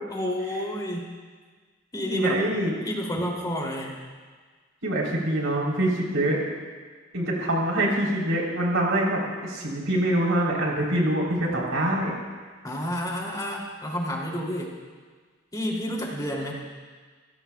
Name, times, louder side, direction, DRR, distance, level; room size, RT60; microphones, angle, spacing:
voice 1, 0.1-1.1 1.9-2.4 2.8-4.0 12.6-14.7 15.5-16.5, equal, 20° left, -2 dB, 3.0 m, -30 dB
voice 2, 2.0-2.7 4.8-6.4 7.1-12.1, right 1 dB, 85° right, -3 dB, 3.8 m, -25 dB
28.5 x 16.0 x 2.4 m, 1.5 s
head